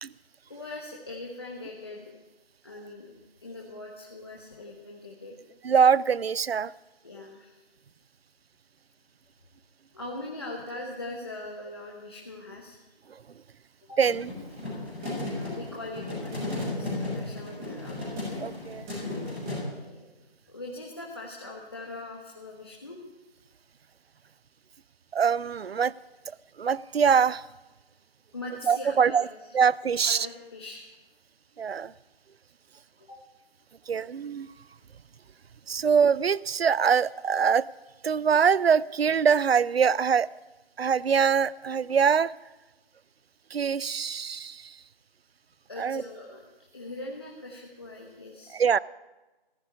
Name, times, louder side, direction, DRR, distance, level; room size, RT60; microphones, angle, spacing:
voice 1, 0.5-2.1 2.6-3.1 3.4-5.3 7.0-7.6 9.9-12.8 13.9-14.0 15.2-18.0 19.7-20.1 20.5-23.0 28.3-29.3 30.0-30.8 33.0-33.2 45.7-46.5 46.7-48.6, left 2 dB, 25° left, -3 dB, 1.3 m, -41 dB
voice 2, 5.6-6.7 14.0-14.3 18.4-18.9 25.1-25.9 26.6-27.4 28.7-29.2 29.5-30.3 31.6-31.9 33.9-34.5 35.7-37.7 38.0-40.3 40.8-42.3 43.5-44.7 45.8-46.0 48.5-48.8, right 6 dB, 75° right, 21 dB, 0.5 m, -23 dB
sound 1, 14.0-19.5, left 2 dB, 5° right, 1.2 m, -34 dB
15.0 x 8.3 x 9.5 m, 1.1 s
figure-of-eight pair, 175°, 31 cm